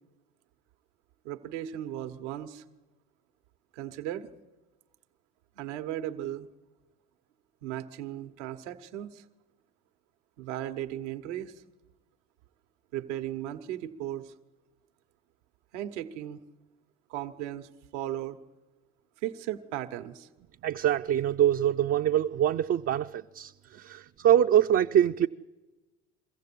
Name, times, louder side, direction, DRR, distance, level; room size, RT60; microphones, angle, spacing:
voice 1, 1.2-2.6 3.7-4.3 5.6-6.5 7.6-9.2 10.4-11.5 12.9-14.3 15.7-16.4 17.1-18.4 19.2-20.3 23.7-23.8, right 12 dB, 85° right, 1.1 m, -36 dB
voice 2, 20.6-23.5 23.8-25.3, right 10 dB, 40° right, 0.6 m, -24 dB
23.0 x 15.0 x 8.5 m
hypercardioid pair, 75°, 35 cm